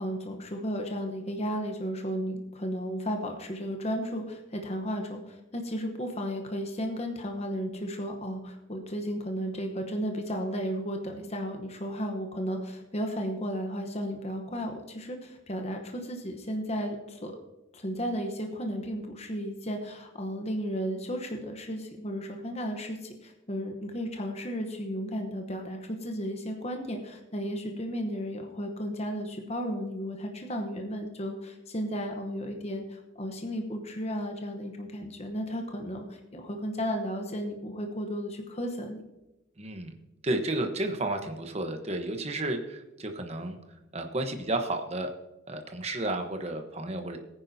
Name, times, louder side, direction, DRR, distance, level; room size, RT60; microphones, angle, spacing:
voice 1, 0.0-17.4 17.7-39.0, equal, 30° left, 4 dB, 0.9 m, -34 dB
voice 2, 39.6-39.9 40.2-43.6 43.9-45.1 45.5-47.2, right 2 dB, 30° right, 5 dB, 1.0 m, -32 dB
18.5 x 9.8 x 2.8 m, 0.98 s
head